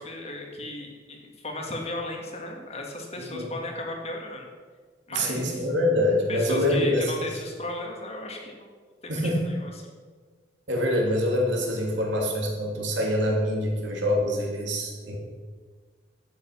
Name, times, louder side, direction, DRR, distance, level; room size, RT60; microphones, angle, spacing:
voice 1, 0.0-4.5 5.1-5.7 6.3-8.7 9.0-9.7, left 2 dB, 35° left, 1 dB, 1.8 m, -36 dB
voice 2, 5.1-7.3 9.1-9.4 10.7-15.2, left 1 dB, 70° right, -1 dB, 2.8 m, -25 dB
12.0 x 8.4 x 5.8 m, 1.5 s
head